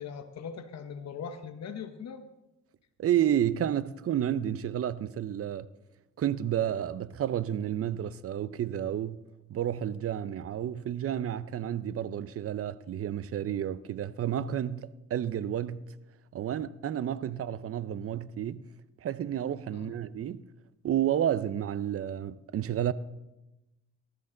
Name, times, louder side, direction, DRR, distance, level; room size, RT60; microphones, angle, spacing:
voice 1, 0.0-2.3 19.7-20.0, left 6 dB, 60° left, 1.1 m, -40 dB
voice 2, 3.0-5.7 6.2-9.2 9.5-15.8 16.3-18.6 19.0-20.4 20.8-22.9, right 10 dB, 50° right, 0.6 m, -31 dB
18.5 x 13.0 x 3.9 m
cardioid pair, 90°, 30 cm